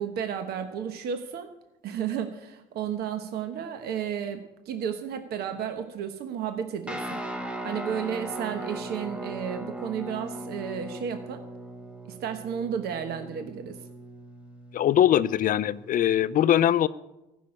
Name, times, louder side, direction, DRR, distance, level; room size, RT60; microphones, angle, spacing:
voice 1, 0.0-1.5 1.8-7.2 7.6-11.4 12.0-13.8, right 8 dB, 70° right, 7 dB, 1.2 m, -33 dB
Guitar, 6.9-16.2, right 1 dB, 5° right, 1.2 m, -39 dB
voice 2, 14.7-16.9, left 11 dB, 55° left, 15 dB, 0.6 m, -21 dB
15.0 x 6.3 x 9.7 m, 0.96 s
cardioid pair, 110°, 17 cm